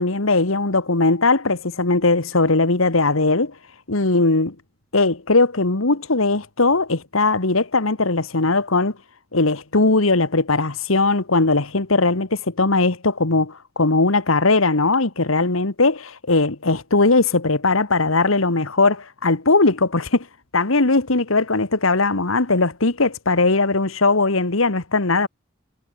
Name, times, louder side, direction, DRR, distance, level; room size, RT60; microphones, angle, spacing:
voice 1, 0.0-3.5 3.9-4.5 4.9-8.9 9.3-20.3 20.5-25.3, left 3 dB, 85° left, 1.8 m, -19 dB
head